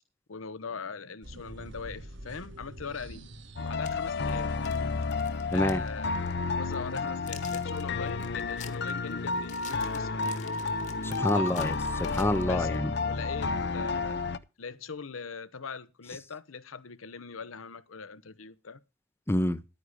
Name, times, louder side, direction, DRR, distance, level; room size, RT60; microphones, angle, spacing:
voice 1, 0.3-3.3 3.6-4.5 5.5-6.1 6.6-10.4 11.3-11.8 12.4-14.2 14.6-18.8, left 5 dB, 80° left, 0.9 m, -41 dB
sound 1, 1.2-5.1, right 1 dB, 60° right, 1.3 m, -47 dB
sound 2, 2.8-2.9 3.7-5.9 6.1-6.3 6.7-12.8, left 8 dB, 35° left, 1.3 m, -49 dB
sound 3, 3.6-14.4, left 4 dB, 55° left, 0.6 m, -31 dB
voice 2, 5.5-5.8 11.0-11.7 12.0-12.9 19.3-19.6, left 1 dB, 10° left, 0.5 m, -27 dB
11.0 x 9.3 x 4.9 m
head